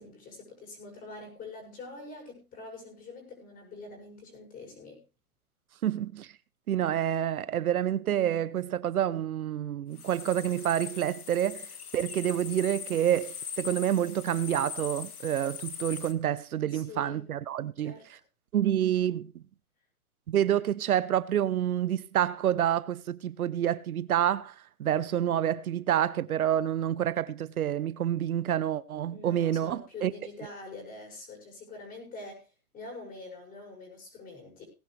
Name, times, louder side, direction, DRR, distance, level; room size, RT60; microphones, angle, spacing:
voice 1, 0.0-5.0 16.7-17.3 17.8-18.1 29.1-32.5 32.7-34.6, left 3 dB, 20° left, 6.5 m, -45 dB
voice 2, 5.8-6.3 6.7-18.0 18.5-19.4 20.3-24.5 24.8-30.1, right 10 dB, 75° right, 0.9 m, -28 dB
sound 1, 9.9-16.1, left 7 dB, 85° left, 1.9 m, -41 dB
19.5 x 10.5 x 3.3 m
hypercardioid pair, 145°, 44 cm